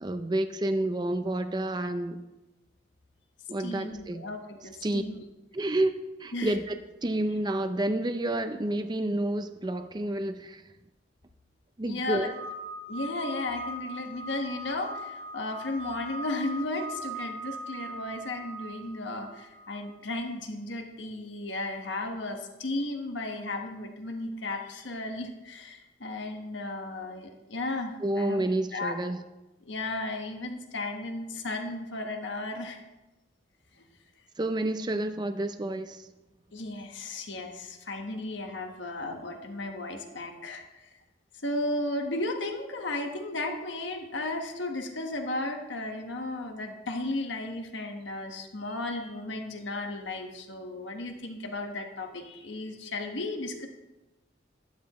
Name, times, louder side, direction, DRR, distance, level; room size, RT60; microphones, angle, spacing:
voice 1, 0.0-2.2 3.5-4.2 4.8-5.0 5.5-5.9 6.2-6.7 7.0-10.6 11.8-12.3 28.0-29.2 34.4-36.0, right 1 dB, 25° right, 8 dB, 0.5 m, -29 dB
voice 2, 3.6-5.2 6.3-6.6 11.9-12.3 12.9-28.4 28.7-28.9 29.6-32.8 33.8-33.9 36.5-40.9 41.4-53.7, left 2 dB, 75° left, 4 dB, 1.4 m, -34 dB
sound 1, 12.1-19.9, equal, 75° right, 1.3 m, -40 dB
12.0 x 12.0 x 3.1 m, 1.0 s
head